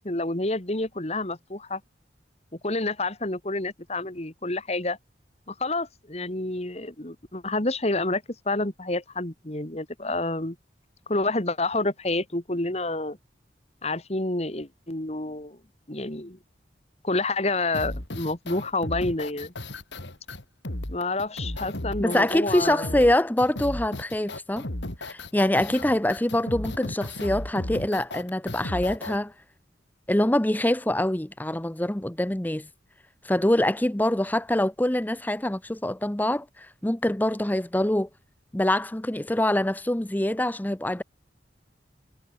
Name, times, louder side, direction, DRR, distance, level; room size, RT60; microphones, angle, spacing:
voice 1, 0.0-1.8 2.5-5.0 5.5-10.6 11.1-13.2 13.8-15.6 15.9-16.4 17.0-19.5 20.9-23.1, left 2 dB, 35° left, 2.2 m, -29 dB
sound 1, 17.7-29.2, left 1 dB, 80° left, 3.4 m, -35 dB
voice 2, 22.0-24.7 25.0-29.3 30.1-32.7 33.2-38.1 38.5-41.0, left 1 dB, 10° left, 0.7 m, -25 dB
head